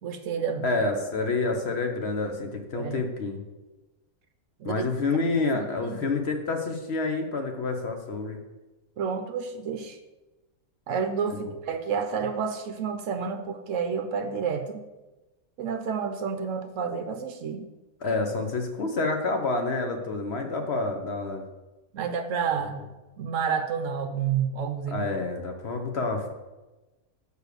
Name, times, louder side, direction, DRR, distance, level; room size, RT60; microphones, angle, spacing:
voice 1, 0.0-0.8 2.7-3.0 4.6-4.8 5.4-6.1 9.0-10.0 10.9-14.8 15.6-17.7 21.9-22.8 23.2-25.0, right 6 dB, 65° right, 7 dB, 0.9 m, -30 dB
voice 2, 0.6-3.4 4.6-8.4 18.0-21.4 24.9-26.3, left 3 dB, 50° left, 4 dB, 1.0 m, -28 dB
6.5 x 4.8 x 6.6 m, 1.1 s
omnidirectional pair, 1.5 m